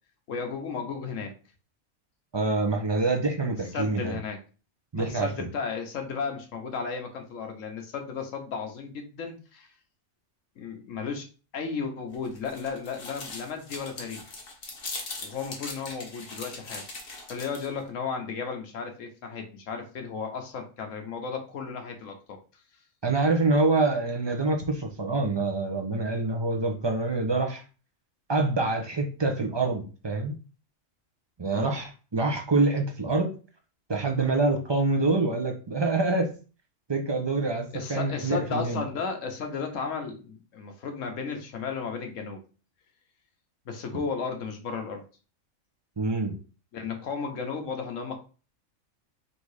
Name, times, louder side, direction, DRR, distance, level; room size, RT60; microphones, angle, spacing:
voice 1, 0.3-1.3 3.7-4.4 4.9-9.7 10.6-11.3 11.5-14.3 15.2-16.9 17.3-22.4 31.5-31.7 37.7-42.4 43.6-45.0 46.7-48.2, left 5 dB, 75° left, 4 dB, 1.3 m, -34 dB
voice 2, 2.3-4.2 4.9-5.5 23.0-27.6 28.3-30.3 31.4-33.3 33.9-36.3 36.9-38.8 46.0-46.4, right 3 dB, 25° right, 3 dB, 0.6 m, -26 dB
sound 1, 12.1-17.8, left 3 dB, 45° left, 1.2 m, -40 dB
3.8 x 2.7 x 4.7 m, 0.35 s
omnidirectional pair, 1.4 m